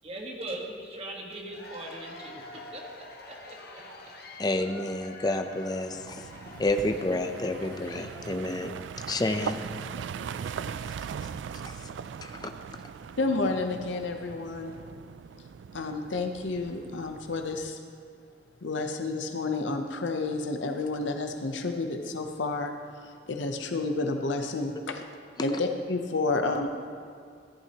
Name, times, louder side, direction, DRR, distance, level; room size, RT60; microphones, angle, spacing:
voice 1, 0.0-2.8 3.3-3.9, right 1 dB, 35° right, 0 dB, 1.4 m, -40 dB
Cheering / Applause / Crowd, 1.3-9.0, left 2 dB, 55° left, 1.2 m, -46 dB
voice 2, 4.4-6.2 6.6-8.8 9.1-9.6 11.7-11.8 12.2-12.5, left 2 dB, 20° left, 7 dB, 0.5 m, -29 dB
sound 1, 5.9-17.8, right 7 dB, 75° right, 0.3 m, -40 dB
voice 3, 13.2-14.7 15.7-17.8 18.6-22.7 23.0-25.0 25.4-26.7, left 3 dB, 85° left, 5 dB, 0.7 m, -30 dB
14.0 x 11.0 x 2.9 m, 2.3 s
head